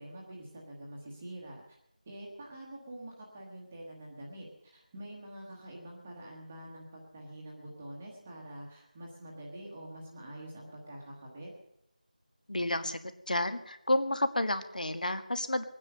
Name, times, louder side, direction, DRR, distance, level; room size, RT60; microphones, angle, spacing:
voice 1, 0.0-1.8 2.0-11.5, right 1 dB, 5° right, -3 dB, 1.1 m, -46 dB
voice 2, 12.5-13.0 13.3-15.6, left 1 dB, 70° left, 10 dB, 1.7 m, -30 dB
21.0 x 9.7 x 6.6 m, 0.81 s
figure-of-eight pair, 180°, 5 cm